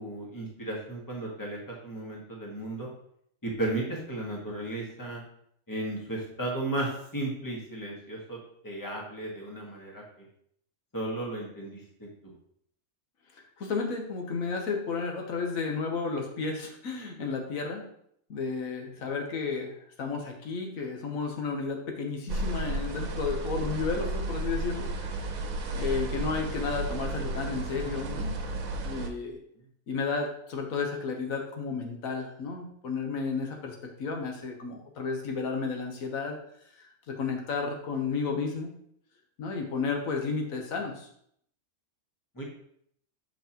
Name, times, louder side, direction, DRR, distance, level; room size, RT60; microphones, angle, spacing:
voice 1, 0.0-2.9 3.4-5.2 5.7-8.4 8.6-10.0 10.9-12.1 42.3-42.4, right 2 dB, 15° left, -2 dB, 1.5 m, -34 dB
voice 2, 13.3-17.9 18.3-25.4 25.7-28.4 28.8-29.4 29.9-36.4 36.8-38.7 39.4-41.1, left 4 dB, 85° left, 2 dB, 1.3 m, -32 dB
sound 1, 22.3-29.1, right 2 dB, 85° right, 1.2 m, -33 dB
7.5 x 5.6 x 2.9 m, 0.69 s
omnidirectional pair, 1.4 m